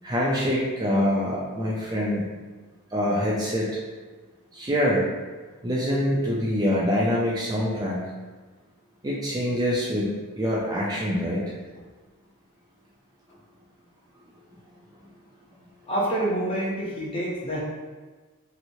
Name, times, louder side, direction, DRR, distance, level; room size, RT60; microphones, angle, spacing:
voice 1, 0.0-2.3 2.9-3.7 4.5-5.0 5.6-8.0 9.0-10.1 10.4-11.4, equal, 15° right, -5 dB, 0.4 m, -25 dB
voice 2, 15.9-17.6, right 1 dB, 25° left, -5 dB, 0.7 m, -27 dB
3.2 x 3.0 x 2.7 m, 1.3 s
head